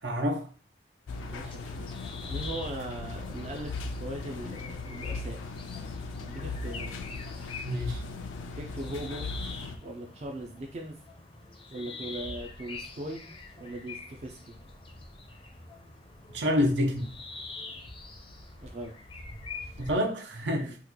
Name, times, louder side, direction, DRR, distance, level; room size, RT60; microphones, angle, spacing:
voice 1, 0.0-0.4 7.6-8.0 16.3-17.1 19.8-20.7, equal, 70° right, 0.6 m, -27 dB
sound 1, 1.1-9.8, left 3 dB, 85° left, 0.4 m, -38 dB
sound 2, 1.1-19.9, left 3 dB, 25° left, 0.4 m, -45 dB
voice 2, 1.3-1.9 2.3-5.4 6.2-6.9 8.6-9.3 9.8-11.0 11.7-13.3 13.6-14.5 18.6-18.9 19.6-19.8 20.6-20.8, right 1 dB, 35° right, 0.4 m, -39 dB
3.0 x 2.3 x 3.6 m
head